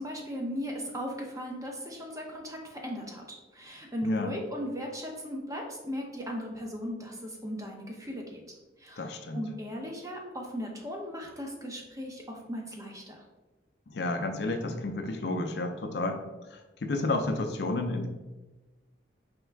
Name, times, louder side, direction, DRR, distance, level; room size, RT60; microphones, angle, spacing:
voice 1, 0.0-8.4 8.8-13.2, equal, 20° right, 0 dB, 0.7 m, -37 dB
voice 2, 4.0-4.3 9.0-9.4 13.9-18.1, left 2 dB, 65° left, 5 dB, 0.5 m, -31 dB
4.5 x 3.5 x 3.3 m, 1.1 s
head